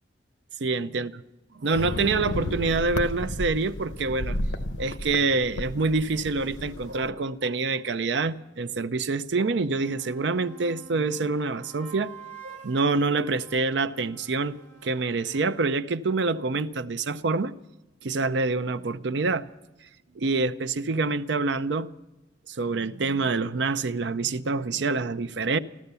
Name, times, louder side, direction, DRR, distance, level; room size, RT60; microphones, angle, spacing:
voice 1, 0.6-1.1 1.6-4.4 4.8-12.1 12.4-17.5 18.0-19.5 20.1-21.9 22.5-25.6, right 3 dB, 70° right, 0.6 m, -26 dB
sound 1, 1.7-7.1, left 1 dB, 85° left, 1.0 m, -33 dB
sound 2, 9.5-15.7, right 6 dB, 45° right, 1.9 m, -48 dB
14.5 x 13.5 x 6.9 m
head